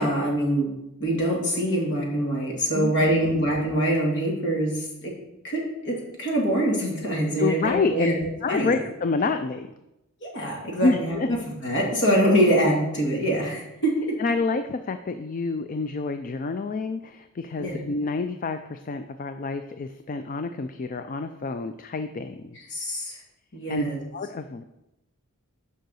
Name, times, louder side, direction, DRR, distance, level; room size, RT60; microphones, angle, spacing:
voice 1, 0.0-5.1 5.4-8.2 8.5-8.7 10.2-11.4 11.6-13.9 17.6-17.8 22.7-23.2 23.5-24.0, right 1 dB, 55° left, -2 dB, 2.4 m, -24 dB
voice 2, 2.7-3.4 7.4-8.2 8.4-9.7 10.8-11.3 14.2-22.6 23.7-24.6, left 4 dB, 40° left, 9 dB, 0.4 m, -28 dB
6.6 x 5.6 x 6.3 m, 0.91 s
head